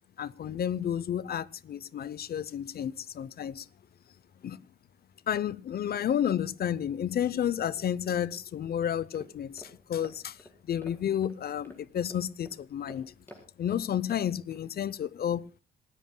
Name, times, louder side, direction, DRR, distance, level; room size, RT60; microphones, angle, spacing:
voice 1, 0.2-3.7 4.4-4.6 5.3-10.4 10.7-13.1 13.6-15.5, left 9 dB, 50° left, 0.7 m, -31 dB
sound 1, 9.1-14.7, equal, 10° left, 4.5 m, -53 dB
27.0 x 14.0 x 2.2 m
cardioid pair, 90°, 20 cm